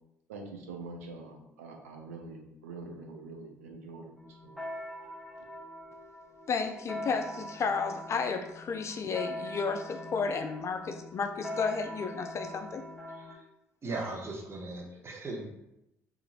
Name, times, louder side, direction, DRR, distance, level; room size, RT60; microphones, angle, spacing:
voice 1, 0.3-4.1 4.4-4.6, right 3 dB, 80° right, 2 dB, 0.4 m, -44 dB
sound 1, 4.2-13.3, left 1 dB, ahead, 0.7 m, -42 dB
voice 2, 6.5-12.8, left 5 dB, 40° left, 6 dB, 0.3 m, -32 dB
voice 3, 13.1-13.4 13.8-15.4, right 2 dB, 35° right, 0 dB, 0.7 m, -38 dB
2.9 x 2.4 x 2.4 m, 0.86 s
figure-of-eight pair, 55°, 8 cm